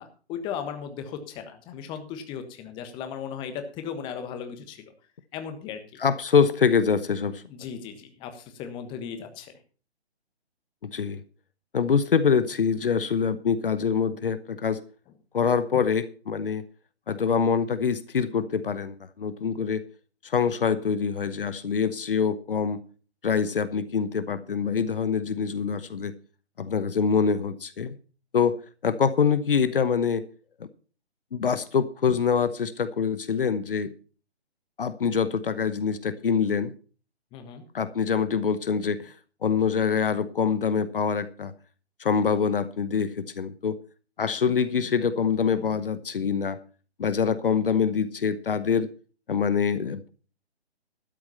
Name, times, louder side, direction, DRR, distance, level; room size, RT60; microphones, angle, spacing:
voice 1, 0.0-4.8 5.3-6.0 7.5-9.5 37.3-37.6, left 7 dB, 15° left, 1.3 m, -37 dB
voice 2, 6.0-7.4 10.8-11.2 11.7-14.8 15.3-16.6 17.1-19.8 20.2-22.8 23.2-26.1 26.6-27.9 28.3-28.6 28.8-30.2 31.3-33.9 34.8-36.7 37.7-39.1 39.4-41.5 42.0-43.8 44.2-46.6 47.0-48.9 49.3-50.1, left 6 dB, 55° left, 1.0 m, -25 dB
12.5 x 8.6 x 5.6 m
figure-of-eight pair, 135°, 33 cm